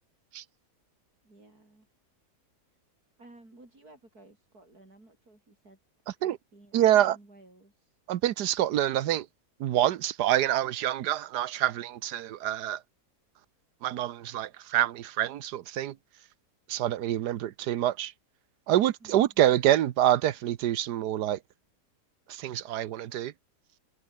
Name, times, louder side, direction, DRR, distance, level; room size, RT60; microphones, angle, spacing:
voice 1, 1.2-1.9 3.2-5.8 6.1-7.9 19.0-19.3, right 2 dB, 65° right, 7.2 m, -55 dB
voice 2, 6.7-7.2 8.1-9.3 9.6-12.8 13.8-16.0 16.7-18.1 18.7-21.4 22.3-23.3, right 12 dB, 85° right, 1.4 m, -26 dB
omnidirectional pair, 1.7 m